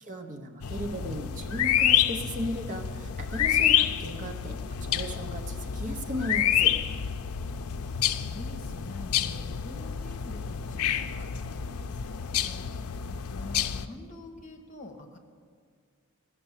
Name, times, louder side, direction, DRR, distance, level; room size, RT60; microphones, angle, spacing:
voice 1, 0.0-6.7, equal, 35° right, 4 dB, 0.8 m, -36 dB
sound 1, 0.6-13.9, left 9 dB, 90° left, 0.4 m, -28 dB
voice 2, 7.5-12.7 13.3-15.2, left 2 dB, 35° left, 3 dB, 1.2 m, -46 dB
15.5 x 6.7 x 7.3 m, 2.1 s
head